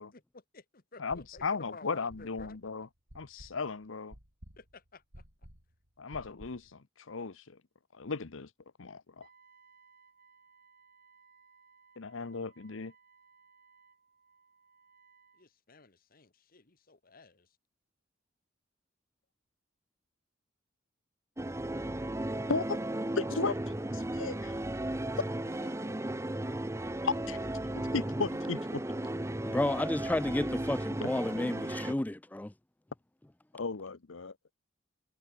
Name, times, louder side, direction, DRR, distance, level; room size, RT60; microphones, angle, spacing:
voice 1, 0.0-2.6 4.6-5.2 15.4-17.5 25.5-26.0 26.9-27.2, left 3 dB, 45° left, 1.4 m, -54 dB
voice 2, 1.0-2.9 3.1-4.1 6.0-7.6 7.9-8.5 8.8-9.3 12.0-12.9 22.5-22.8 23.2-23.6 23.9-24.6 27.0-27.4 27.7-28.8 33.5-34.3, left 4 dB, 80° left, 0.9 m, -35 dB
sound 1, 1.1-1.7 2.1-6.7, equal, 75° right, 5.7 m, -53 dB
Wind instrument woodwind instrument, 9.2-15.5, right 5 dB, 45° right, 7.9 m, -63 dB
sound 2, 21.4-31.9, right 1 dB, 15° right, 0.8 m, -35 dB
voice 3, 29.4-32.5, left 1 dB, 10° left, 0.4 m, -31 dB
head